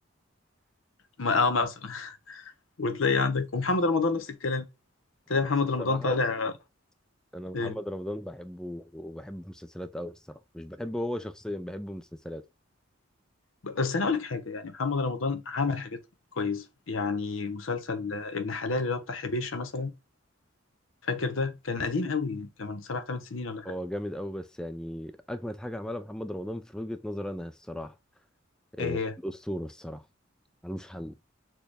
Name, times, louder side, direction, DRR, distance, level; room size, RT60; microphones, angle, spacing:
voice 1, 1.2-2.5 2.8-4.7 5.3-6.5 7.5-7.8 13.6-16.0 16.4-19.9 21.0-23.7 28.8-29.1, left 4 dB, 80° left, 0.8 m, -29 dB
voice 2, 5.8-6.1 7.3-12.4 23.6-27.9 28.7-30.0 30.6-31.2, equal, 5° left, 0.3 m, -36 dB
6.3 x 2.3 x 3.4 m
head